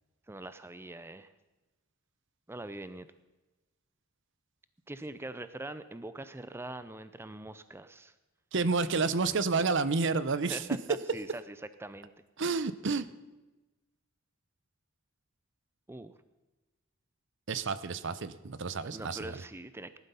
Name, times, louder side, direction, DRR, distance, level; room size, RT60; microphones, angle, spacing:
voice 1, 0.3-1.3 2.5-3.1 4.9-8.1 10.5-12.1 15.9-16.1 18.8-20.0, right 2 dB, 10° right, 13 dB, 0.5 m, -43 dB
voice 2, 8.5-10.7 12.4-13.1 17.5-19.4, right 4 dB, 60° right, 14 dB, 0.7 m, -30 dB
18.0 x 12.0 x 5.6 m, 1.1 s
head